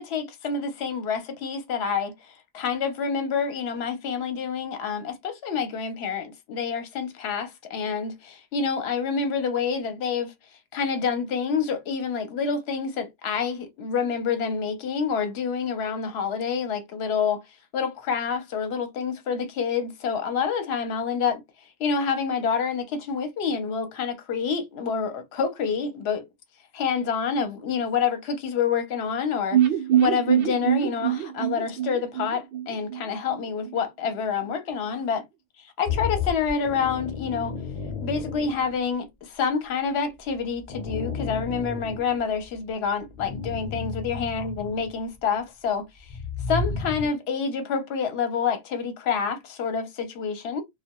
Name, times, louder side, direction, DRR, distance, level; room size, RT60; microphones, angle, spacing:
voice 1, 0.0-10.3 10.7-17.4 17.7-21.4 21.8-26.2 26.7-29.6 30.0-35.2 35.8-37.6 38.0-45.8 46.5-50.6, left 6 dB, 60° left, 0.9 m, -27 dB
sound 1, 29.5-33.4 33.7-33.8 34.0-34.1, right 11 dB, 60° right, 0.7 m, -24 dB
sound 2, 35.8-38.9 40.2-42.6 43.1-45.0 46.0-47.1, left 4 dB, 40° left, 0.6 m, -32 dB
2.3 x 2.2 x 2.8 m
omnidirectional pair, 1.3 m